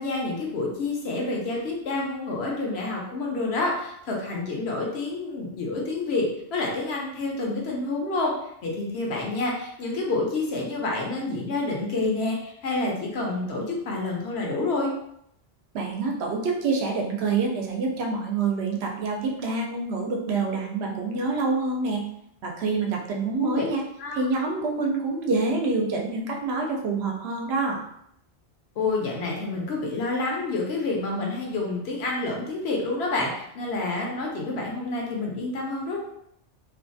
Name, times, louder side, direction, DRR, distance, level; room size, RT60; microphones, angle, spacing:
voice 1, 0.0-8.3 8.6-14.9 23.4-23.7 24.0-24.2 28.8-36.0, left 2 dB, 70° left, -1 dB, 0.9 m, -28 dB
voice 2, 15.7-22.0 22.4-23.8 24.1-27.8, right 3 dB, 70° right, 0 dB, 0.8 m, -26 dB
2.5 x 2.3 x 2.5 m, 0.74 s
omnidirectional pair, 1.2 m